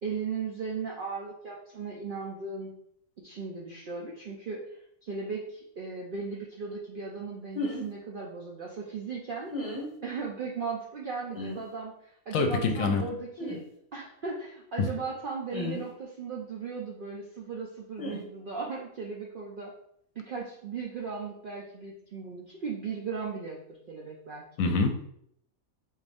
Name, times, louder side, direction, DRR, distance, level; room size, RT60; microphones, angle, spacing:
voice 1, 0.0-2.7 3.2-4.6 5.0-9.5 10.0-13.6 13.9-19.7 20.2-24.7, right 5 dB, 65° right, -2 dB, 0.5 m, -37 dB
sound 1, 7.5-7.8 9.5-9.9 11.3-11.6 13.4-13.6 15.5-15.9 18.0-18.2, left 2 dB, 30° left, 0.9 m, -34 dB
voice 2, 12.3-13.1 14.8-14.9 24.6-25.0, left 4 dB, 70° left, 5 dB, 1.0 m, -25 dB
4.2 x 2.5 x 3.4 m, 0.70 s
omnidirectional pair, 1.5 m